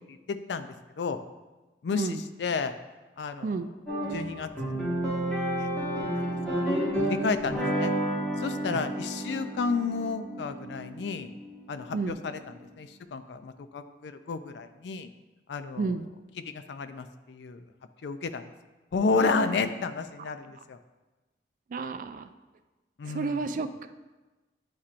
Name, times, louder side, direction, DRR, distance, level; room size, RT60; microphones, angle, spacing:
voice 1, 0.1-1.2 1.8-2.7 3.2-3.6 4.1-4.9 5.6-6.8 7.1-7.9 8.4-11.3 11.7-12.4 12.8-15.1 15.5-15.9 16.5-17.6 18.0-18.5 18.9-20.8 23.0-23.5, left 4 dB, 75° left, 10 dB, 0.4 m, -32 dB
sound 1, 3.9-12.3, right 1 dB, 5° left, 1.5 m, -31 dB
voice 2, 19.2-19.5 21.7-22.3 23.0-23.9, right 4 dB, 45° right, 9 dB, 0.3 m, -31 dB
9.5 x 4.3 x 2.5 m, 1.2 s
head